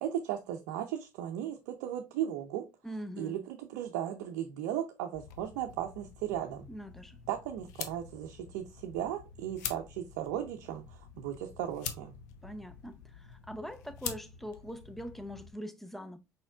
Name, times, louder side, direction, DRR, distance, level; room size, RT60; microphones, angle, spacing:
voice 1, 0.0-2.7 3.2-6.7 7.3-12.1, right 11 dB, 80° right, 0.6 m, -36 dB
voice 2, 2.8-3.4 6.7-7.2 12.4-16.2, equal, ahead, 0.7 m, -43 dB
sound 1, 5.1-15.5, left 8 dB, 85° left, 0.7 m, -46 dB
5.0 x 4.2 x 2.3 m
hypercardioid pair, 70°, 9 cm